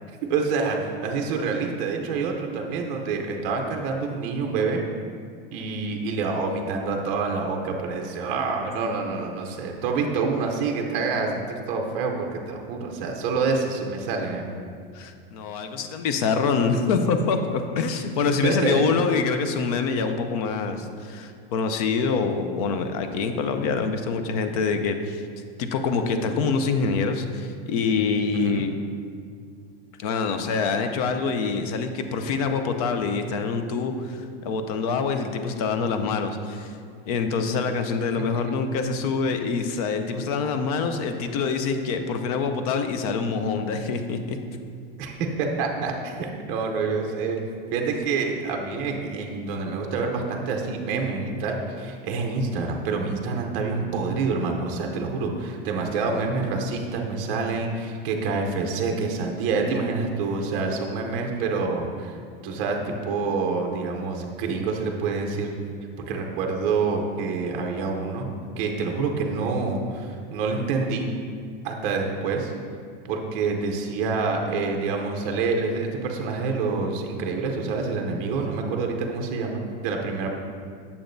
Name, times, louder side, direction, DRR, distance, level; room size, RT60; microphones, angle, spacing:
voice 1, 0.3-4.8 5.5-14.6 18.2-18.8 28.3-28.6 38.3-38.6 45.0-47.4 47.7-62.2 62.4-65.5 66.1-68.3 68.6-71.1 71.6-72.5 73.0-80.3, right 4 dB, 30° right, 2 dB, 0.6 m, -27 dB
voice 2, 14.9-25.2 25.6-28.8 30.0-36.8 37.1-44.4, left 5 dB, 40° left, 7 dB, 0.5 m, -25 dB
8.5 x 7.0 x 2.6 m, 2.2 s
supercardioid pair, 175°, 30 cm